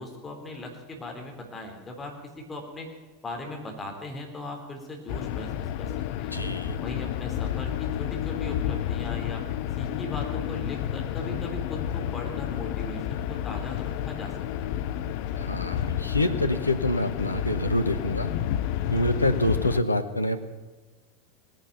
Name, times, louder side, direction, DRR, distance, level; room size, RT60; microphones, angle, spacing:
voice 1, 0.0-2.1 2.5-2.9 3.2-5.9 6.2-6.4 6.8-9.4 9.8-14.3 14.6-14.8, left 1 dB, 20° left, 2 dB, 3.7 m, -39 dB
sound 1, 5.1-19.8, left 10 dB, 50° left, 0.7 m, -30 dB
voice 2, 6.3-6.8 15.4-18.3 18.9-20.4, left 1 dB, 85° left, 9 dB, 1.0 m, -26 dB
19.0 x 10.5 x 7.1 m, 1.2 s
figure-of-eight pair, 85°, 0 cm